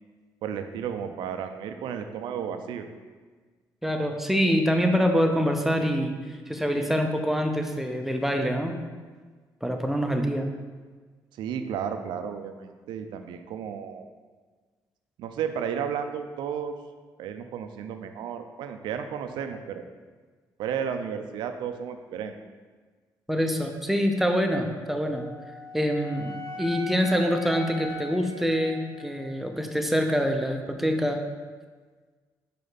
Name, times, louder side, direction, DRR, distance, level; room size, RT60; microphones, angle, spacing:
voice 1, 0.4-2.9 11.3-14.1 15.2-16.7 17.2-19.8 20.6-22.4, right 7 dB, 80° right, 7 dB, 0.5 m, -33 dB
voice 2, 3.8-8.8 9.6-10.5 23.3-25.3 25.7-31.2, equal, 5° right, 4 dB, 0.7 m, -25 dB
Wind instrument woodwind instrument, 25.1-29.3, equal, 35° left, 1.4 m, -39 dB
5.1 x 4.5 x 4.0 m, 1.5 s
cardioid pair, 70°, 8 cm